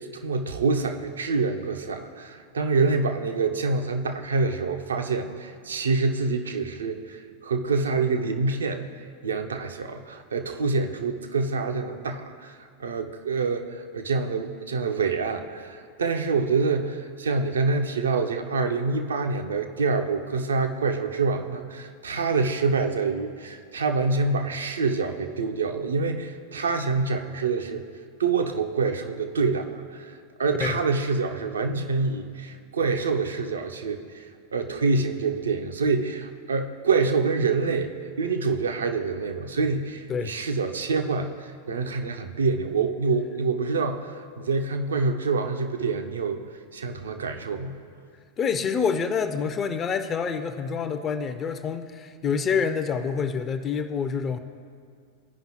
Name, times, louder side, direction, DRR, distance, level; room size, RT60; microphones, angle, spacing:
voice 1, 0.1-8.8 9.2-12.5 12.8-13.6 13.9-27.9 28.2-34.3 34.5-46.4 46.7-47.8, right 4 dB, 70° right, 6 dB, 0.6 m, -26 dB
voice 2, 48.4-54.4, left 6 dB, 25° left, 9 dB, 0.4 m, -27 dB
14.5 x 5.4 x 2.9 m, 2.2 s
figure-of-eight pair, 90°, 0 cm